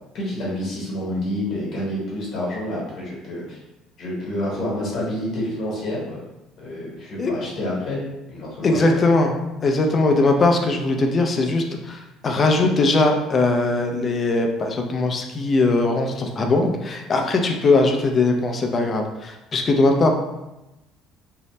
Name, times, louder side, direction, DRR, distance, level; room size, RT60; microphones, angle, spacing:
voice 1, 0.1-3.6 4.0-6.2 6.6-8.0 8.3-8.9, left 1 dB, 55° left, -5 dB, 1.1 m, -28 dB
voice 2, 8.6-9.3 9.6-20.2, left 2 dB, 30° left, 3 dB, 0.4 m, -20 dB
2.7 x 2.0 x 3.2 m, 0.97 s
cardioid pair, 120°, 0 cm